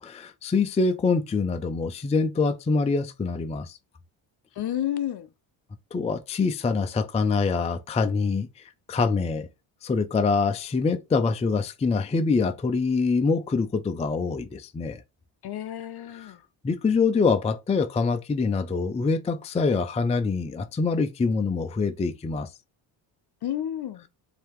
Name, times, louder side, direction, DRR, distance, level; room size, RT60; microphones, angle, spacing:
voice 1, 0.0-3.8 5.9-8.5 8.9-9.5 9.8-15.0 16.1-16.3 16.6-22.5, left 4 dB, 15° left, 0.4 m, -25 dB
voice 2, 4.6-5.3 15.4-16.4 23.4-24.0, left 11 dB, 50° left, 0.7 m, -30 dB
4.6 x 2.9 x 3.5 m
cardioid pair, 95°, 50 cm